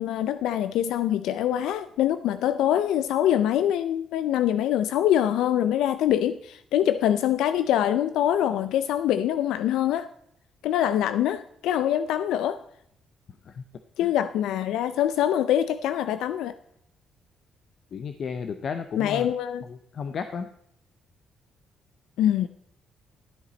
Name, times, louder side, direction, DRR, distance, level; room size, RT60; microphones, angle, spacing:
voice 1, 0.0-10.1 10.6-12.6 14.0-16.5 19.0-19.6 22.2-22.5, left 11 dB, 85° left, 12 dB, 0.4 m, -24 dB
voice 2, 17.9-19.3 19.7-20.5, left 6 dB, 55° left, 9 dB, 0.7 m, -33 dB
13.0 x 8.3 x 4.0 m, 0.72 s
cardioid pair, 90°, 0 cm